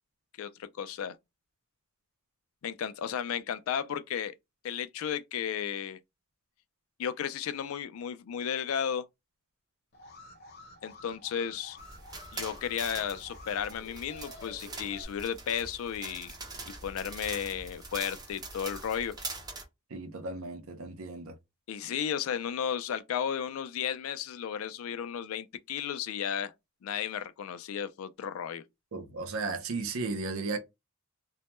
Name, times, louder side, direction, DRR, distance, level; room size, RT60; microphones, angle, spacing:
voice 1, 0.4-1.2 2.6-4.3 4.6-6.0 7.0-9.0 10.8-11.8 12.3-16.3 16.7-19.1 21.7-26.5 26.8-28.6, left 8 dB, 75° left, 0.3 m, -34 dB
Alarm, 9.9-15.0, left 2 dB, 50° left, 0.7 m, -50 dB
sound 1, 11.8-19.6, right 3 dB, 20° right, 0.5 m, -43 dB
voice 2, 19.9-21.4 28.9-30.6, right 3 dB, 75° right, 0.5 m, -35 dB
2.1 x 2.1 x 2.9 m
head